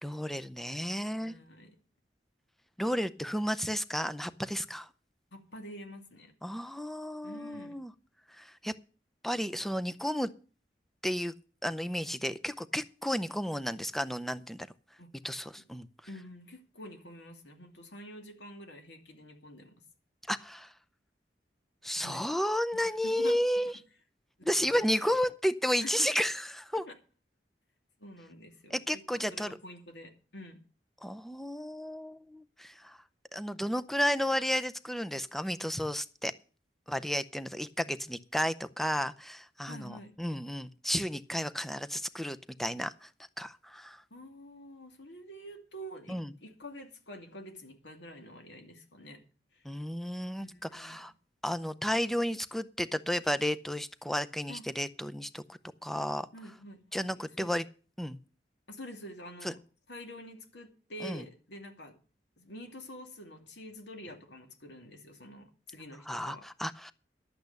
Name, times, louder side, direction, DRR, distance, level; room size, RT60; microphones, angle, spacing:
voice 1, 0.0-1.3 2.8-4.9 6.4-7.9 8.4-8.7 9.2-10.3 11.0-11.3 11.6-14.7 15.2-15.9 20.3-20.7 21.8-23.7 24.4-26.8 28.7-29.6 31.0-33.0 33.3-36.3 36.9-43.1 43.4-44.0 46.1-46.3 49.6-51.1 51.4-56.3 56.9-57.6 58.0-58.2 59.4-59.5 61.0-61.2 66.1-66.9, equal, ahead, 11 dB, 0.5 m, -32 dB
voice 2, 1.2-1.8 5.3-6.3 7.2-7.8 15.0-15.1 16.1-19.7 22.0-22.2 22.8-23.4 24.4-24.8 25.8-26.1 26.7-26.8 28.0-30.6 39.7-40.2 44.1-49.2 49.5-49.6 50.4-51.0 54.5-54.6 56.3-57.5 58.7-59.6 59.9-62.0 62.4-66.5, equal, 80° left, 4 dB, 2.6 m, -47 dB
11.5 x 8.5 x 6.7 m, 0.39 s
head